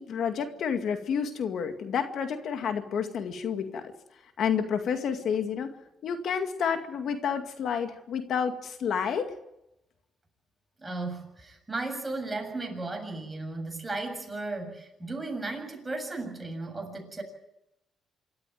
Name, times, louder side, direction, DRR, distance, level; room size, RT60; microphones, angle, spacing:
voice 1, 0.0-3.9 4.4-9.3, left 7 dB, 65° left, 6 dB, 2.1 m, -30 dB
voice 2, 10.8-17.2, right 2 dB, 15° right, 3 dB, 7.4 m, -35 dB
26.5 x 13.5 x 9.3 m, 0.86 s
cardioid pair, 90°, 0 cm